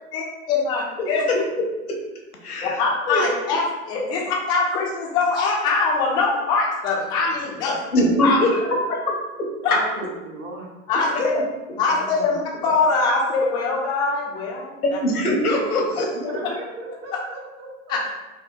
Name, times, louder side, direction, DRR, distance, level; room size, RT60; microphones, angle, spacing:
voice 1, 0.1-1.4 2.6-7.8 8.2-8.4 9.6-9.8 10.9-11.3 11.8-14.8 16.2-16.3 17.9-18.1, left 4 dB, 10° left, -3 dB, 0.3 m, -23 dB
voice 2, 2.4-2.8 3.1-3.2 7.9-9.0 14.8-16.1, left 1 dB, 90° left, 1 dB, 0.8 m, -21 dB
voice 3, 9.6-10.7 11.7-12.7 16.1-18.1, right 2 dB, 40° right, -1 dB, 1.0 m, -37 dB
4.6 x 2.1 x 2.5 m, 1.1 s
figure-of-eight pair, 95°, 43 cm